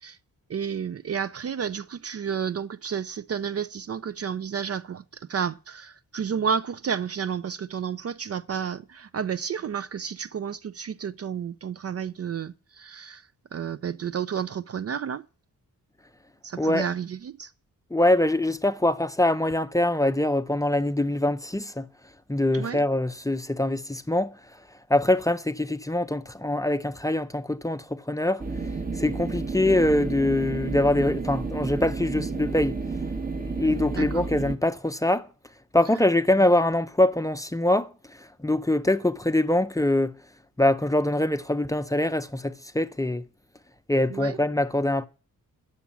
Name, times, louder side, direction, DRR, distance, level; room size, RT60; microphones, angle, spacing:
voice 1, 0.5-15.2 16.4-17.5 22.5-22.8 33.9-34.3 44.1-44.4, right 7 dB, 45° right, 0.4 m, -31 dB
voice 2, 17.9-21.9 22.3-24.4 24.9-28.4 28.9-32.8 33.5-35.3 35.7-40.2 40.6-43.2 43.9-45.1, left 1 dB, 10° left, 0.5 m, -24 dB
sound 1, 28.4-34.6, right 4 dB, 25° right, 0.9 m, -31 dB
10.0 x 7.1 x 7.1 m
wide cardioid pair, 130°, 35 cm